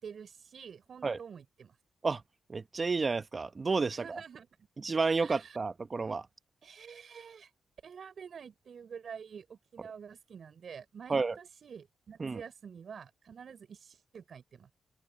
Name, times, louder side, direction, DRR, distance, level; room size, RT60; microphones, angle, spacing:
voice 1, 0.0-1.7 3.9-4.5 5.2-5.6 6.6-7.5 7.8-14.7, right 7 dB, 60° right, 5.1 m, -48 dB
voice 2, 2.5-4.2 4.8-6.3 11.1-11.3 12.2-12.4, right 4 dB, 40° right, 1.2 m, -31 dB
supercardioid pair, 50°, 0 cm